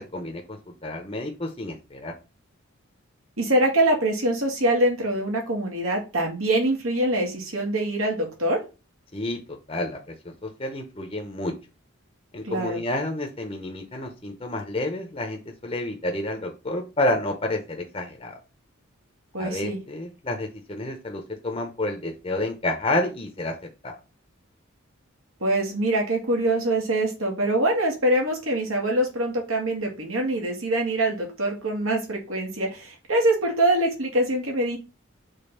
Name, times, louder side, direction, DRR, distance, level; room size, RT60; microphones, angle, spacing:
voice 1, 0.0-2.1 9.1-11.5 12.3-18.4 19.4-24.0, left 1 dB, 30° left, 3 dB, 0.8 m, -30 dB
voice 2, 3.4-8.6 12.4-12.8 19.3-19.8 25.4-34.8, right 1 dB, 85° right, 1 dB, 2.4 m, -24 dB
5.2 x 3.9 x 5.6 m, 0.30 s
head